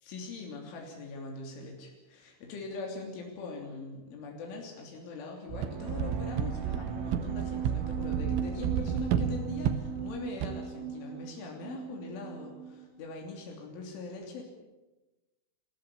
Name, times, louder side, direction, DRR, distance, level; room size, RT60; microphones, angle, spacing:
voice 1, 0.1-14.4, left 4 dB, 90° left, 1 dB, 5.7 m, -42 dB
sound 1, 5.5-13.0, right 8 dB, 50° right, 2.6 m, -39 dB
sound 2, 5.5-10.5, right 8 dB, 85° right, 3.7 m, -32 dB
28.5 x 14.5 x 8.6 m, 1.1 s
omnidirectional pair, 5.4 m